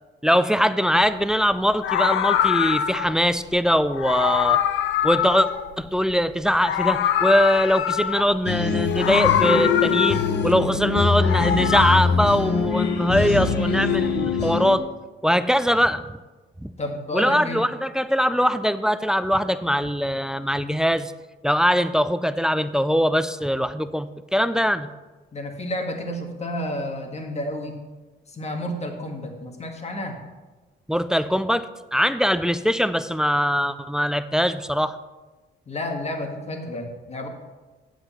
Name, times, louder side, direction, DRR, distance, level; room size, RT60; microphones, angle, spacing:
voice 1, 0.2-4.6 5.0-5.5 5.8-14.8 15.2-16.0 16.6-16.7 17.1-21.1 21.4-24.9 30.9-35.0, equal, 5° right, 13 dB, 0.4 m, -22 dB
Meow, 0.9-1.2 1.7-3.2 3.9-6.2 6.5-8.4 8.9-10.5 11.0-12.0, left 10 dB, 80° left, 0.6 m, -24 dB
sound 1, 8.5-14.8, left 5 dB, 60° left, 1.1 m, -23 dB
voice 2, 16.8-17.7 25.3-27.8 28.3-30.2 35.7-37.3, left 1 dB, 35° left, 3 dB, 1.7 m, -31 dB
7.9 x 7.9 x 5.8 m, 1.2 s
cardioid pair, 90°, 20 cm